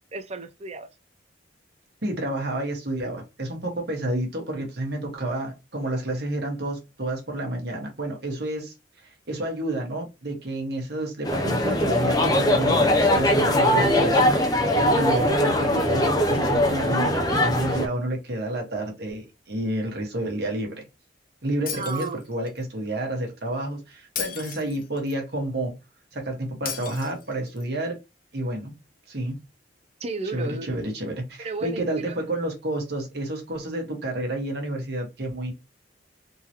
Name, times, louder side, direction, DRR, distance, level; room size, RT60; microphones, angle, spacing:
voice 1, 0.1-0.9 21.7-22.2 30.0-30.8 31.4-32.2, right 4 dB, 35° right, 0.5 m, -33 dB
voice 2, 2.0-8.7 9.3-20.8 21.4-25.7 26.1-28.0 28.3-28.7 29.1-29.3 30.3-35.5, right 1 dB, 60° right, 1.4 m, -30 dB
sound 1, 11.2-17.9, left 1 dB, 20° left, 0.6 m, -21 dB
Shatter, 21.7-22.6 24.2-25.2 26.7-27.6, left 8 dB, 50° left, 0.8 m, -35 dB
3.8 x 2.9 x 2.9 m
head